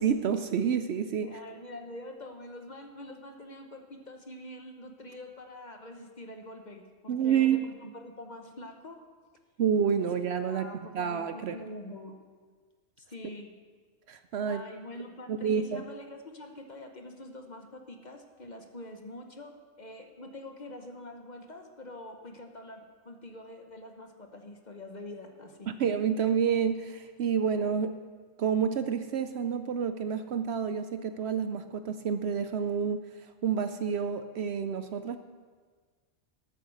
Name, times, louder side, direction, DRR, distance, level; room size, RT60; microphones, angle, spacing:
voice 1, 0.0-1.4 7.1-7.6 9.6-10.7 10.9-11.6 14.1-14.6 15.3-15.8 25.7-27.9 28.4-33.0 33.4-35.2, right 7 dB, 65° right, 10 dB, 0.7 m, -29 dB
voice 2, 1.2-9.0 10.4-12.2 13.0-13.5 14.5-25.7, left 1 dB, 40° left, 4 dB, 1.0 m, -45 dB
13.5 x 7.9 x 6.3 m, 1.5 s
omnidirectional pair, 1.3 m